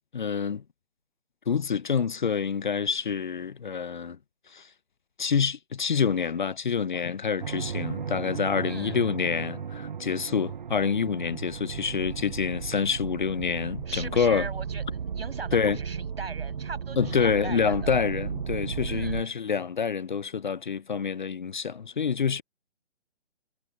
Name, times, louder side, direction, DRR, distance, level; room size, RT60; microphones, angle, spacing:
voice 1, 0.1-0.6 1.5-4.2 4.5-4.7 5.2-14.5 15.5-15.8 17.0-22.4, left 6 dB, 45° left, 0.8 m, -27 dB
sound 1, 7.4-19.2, right 7 dB, 45° right, 1.1 m, -35 dB
voice 2, 8.7-9.0 13.9-17.7 18.9-19.3, right 4 dB, 60° right, 6.6 m, -40 dB
figure-of-eight pair, 140°, 33 cm